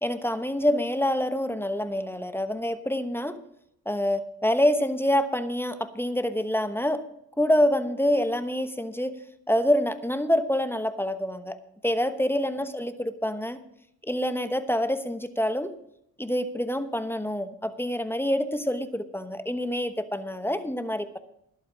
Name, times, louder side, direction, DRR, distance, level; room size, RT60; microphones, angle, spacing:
voice 1, 0.0-3.4 3.9-7.0 7.4-9.1 9.5-11.6 11.8-13.6 14.1-15.7 16.2-21.2, equal, 5° left, 11 dB, 1.0 m, -26 dB
11.5 x 8.2 x 6.1 m, 0.77 s
supercardioid pair, 55°, 41 cm